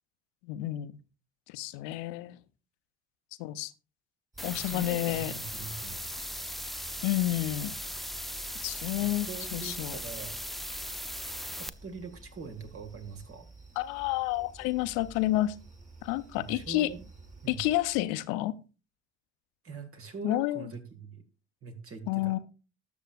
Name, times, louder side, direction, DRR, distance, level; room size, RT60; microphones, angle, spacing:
voice 1, 0.4-0.9 1.5-2.4 3.4-3.7 4.4-5.3 7.0-7.8 8.6-10.0 13.8-15.5 16.0-16.9 17.5-18.5 20.2-20.7 22.1-22.4, left 16 dB, 65° left, 13 dB, 0.8 m, -30 dB
sound 1, 4.3-18.0, right 2 dB, 25° right, 3.1 m, -51 dB
sound 2, 4.4-11.7, equal, ahead, 0.6 m, -38 dB
voice 2, 4.4-6.0 9.0-10.5 11.5-13.5 16.3-17.0 17.4-17.6 19.6-21.2 21.6-22.4, right 5 dB, 40° right, 5 dB, 2.0 m, -43 dB
19.0 x 7.2 x 2.5 m, 0.33 s
figure-of-eight pair, 55°, 33 cm